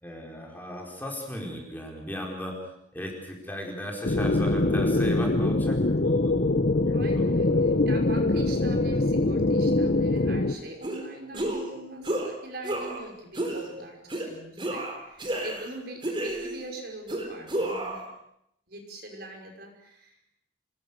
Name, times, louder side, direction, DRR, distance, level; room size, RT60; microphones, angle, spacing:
voice 1, 0.0-2.6 2.9-6.3 6.8-7.6, equal, 10° left, 0 dB, 4.6 m, -37 dB
sound 1, 4.0-10.5, left 2 dB, 55° left, 1.0 m, -23 dB
voice 2, 6.9-18.0 18.7-20.1, right 2 dB, 55° right, 2 dB, 5.8 m, -42 dB
sound 2, 10.8-11.0 11.3-11.7 12.0-12.3 12.6-13.0 13.4-13.6 14.1-14.3 14.6-15.7 16.0-16.7 17.1-18.0, right 1 dB, 25° right, 4.0 m, -31 dB
27.5 x 20.5 x 6.8 m, 0.76 s
head